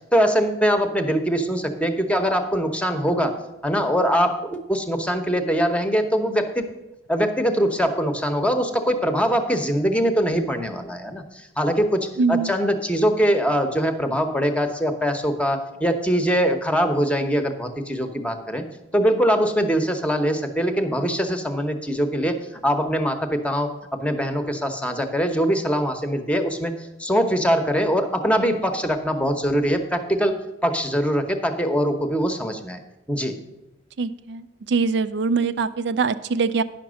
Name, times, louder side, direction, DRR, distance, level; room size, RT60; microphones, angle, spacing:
voice 1, 0.1-3.4 3.6-6.7 7.1-18.6 18.9-26.7 27.0-32.8 33.1-33.3, equal, 5° left, 6 dB, 0.8 m, -22 dB
voice 2, 12.2-12.5 34.0-36.6, right 4 dB, 65° right, 12 dB, 0.4 m, -23 dB
10.0 x 5.9 x 6.3 m, 0.97 s
head